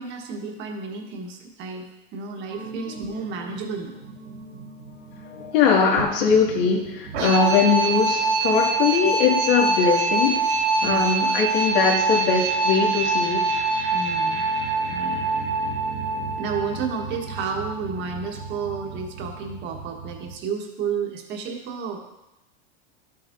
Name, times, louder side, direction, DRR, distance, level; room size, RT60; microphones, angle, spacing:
voice 1, 0.0-1.8 2.1-4.0 10.8-11.0 13.9-14.5 14.9-15.3 16.4-22.0, right 5 dB, 35° right, 2 dB, 1.4 m, -31 dB
sound 1, 2.5-20.3, right 3 dB, 80° right, 2.6 m, -26 dB
voice 2, 4.9-10.4 10.8-13.4, left 6 dB, 60° left, 0 dB, 2.1 m, -21 dB
12.5 x 8.3 x 2.7 m, 0.95 s
supercardioid pair, 155°, 31 cm